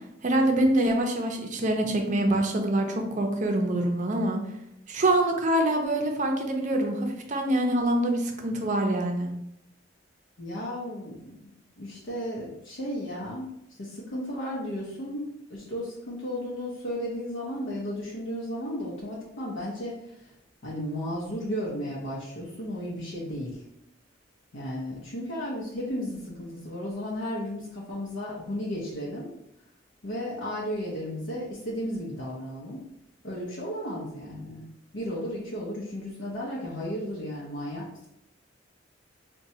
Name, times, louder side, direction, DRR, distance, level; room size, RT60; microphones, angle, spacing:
voice 1, 0.2-4.4 4.9-9.3, right 1 dB, 40° right, 3 dB, 0.5 m, -25 dB
voice 2, 10.4-11.3 11.8-20.3 20.6-23.6 24.5-29.3 30.0-32.8 33.2-34.7 34.9-37.9, equal, 75° left, -6 dB, 0.7 m, -34 dB
4.2 x 2.2 x 2.7 m, 0.81 s
head